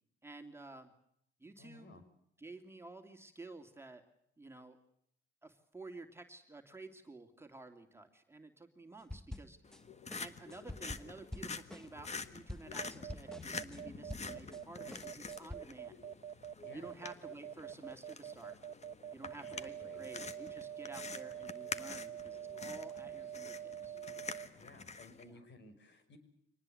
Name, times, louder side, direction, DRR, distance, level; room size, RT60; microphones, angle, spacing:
voice 1, 0.2-0.9 1.4-2.0 2.4-4.1 4.4-4.8 5.4-9.6 10.2-16.0 16.7-18.6 19.1-24.0 25.2-25.4, right 3 dB, 10° right, 4 dB, 2.7 m, -52 dB
voice 2, 1.6-2.0 16.6-16.9 19.4-20.1 24.6-26.2, left 3 dB, 65° left, 9 dB, 5.9 m, -56 dB
sound 1, 9.1-9.8 10.1-14.6 14.9-15.6, left 1 dB, 5° left, 0.8 m, -47 dB
sound 2, 9.6-25.2, left 4 dB, 35° left, 1.7 m, -47 dB
sound 3, 12.8-24.5, right 9 dB, 35° right, 1.2 m, -45 dB
25.0 x 19.5 x 7.8 m, 0.74 s
cardioid pair, 90°, 20 cm